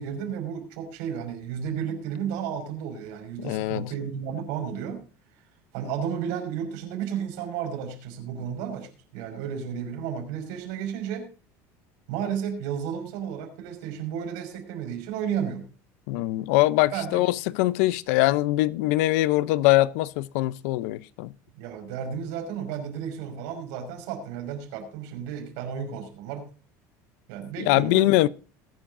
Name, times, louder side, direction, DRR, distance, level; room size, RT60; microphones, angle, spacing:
voice 1, 0.0-5.0 5.7-11.3 12.1-15.6 16.9-17.3 21.6-26.5 27.3-28.1, right 8 dB, 75° right, 5.4 m, -33 dB
voice 2, 3.4-3.9 16.1-21.3 27.6-28.3, left 18 dB, 80° left, 0.6 m, -22 dB
21.5 x 10.0 x 2.6 m
cardioid pair, 170°, 8 cm